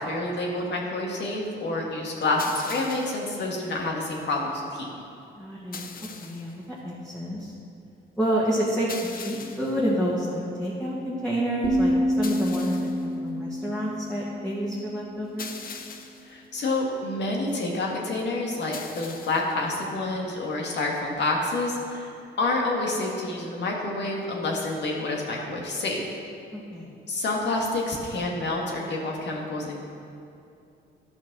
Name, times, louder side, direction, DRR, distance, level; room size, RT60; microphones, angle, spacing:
voice 1, 0.0-4.9 16.3-22.1 22.4-26.1 27.1-29.8, left 2 dB, 60° left, -1 dB, 2.0 m, -28 dB
sound 1, 2.4-3.3 5.7-6.6 8.9-9.8 12.2-13.1 15.4-16.3 18.7-19.6, left 5 dB, 45° left, 0.9 m, -40 dB
voice 2, 5.4-5.9 6.2-6.5 6.8-7.5 8.2-15.5 26.5-26.9, equal, 5° left, -7 dB, 1.8 m, -28 dB
sound 2, 11.6-15.5, equal, 20° right, 0.9 m, -28 dB
12.0 x 5.8 x 6.1 m, 2.6 s
cardioid pair, 90°, 20 cm